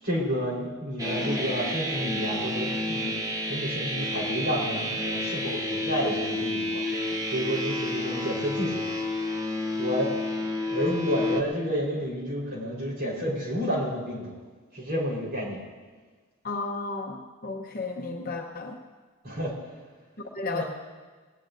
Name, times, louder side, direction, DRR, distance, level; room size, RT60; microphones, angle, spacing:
voice 1, 0.0-3.2 3.5-6.8 7.3-8.8 9.8-10.1 10.7-14.4 14.7-15.6 19.2-19.5 20.5-20.6, equal, 45° right, -3 dB, 4.3 m, -30 dB
sound 1, 1.0-11.4, left 1 dB, 15° right, 0.8 m, -30 dB
voice 2, 16.4-18.8 20.3-20.6, left 3 dB, 40° left, 1 dB, 0.9 m, -33 dB
20.5 x 18.5 x 2.6 m, 1.4 s
head